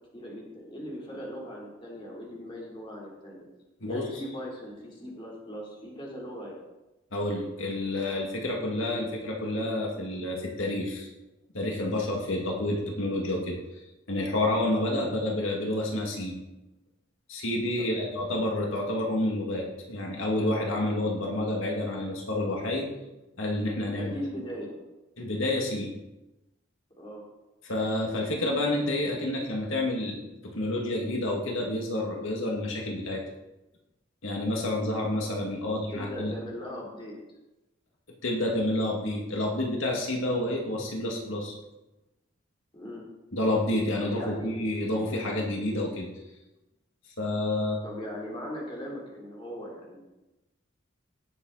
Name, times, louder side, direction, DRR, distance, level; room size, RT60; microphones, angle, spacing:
voice 1, 0.1-3.5 3.9-6.6 14.9-15.1 17.8-18.1 23.9-24.7 27.0-27.2 35.7-37.2 42.7-43.0 44.0-44.5 47.8-50.0, equal, 25° left, -4 dB, 3.4 m, -39 dB
voice 2, 3.8-4.2 7.1-11.1 11.5-16.4 17.3-22.9 23.4-24.2 25.2-25.9 27.6-33.2 34.2-36.3 38.2-41.5 43.3-46.1 47.2-47.8, left 1 dB, 75° left, -1 dB, 2.1 m, -29 dB
18.0 x 7.4 x 4.1 m, 0.99 s
head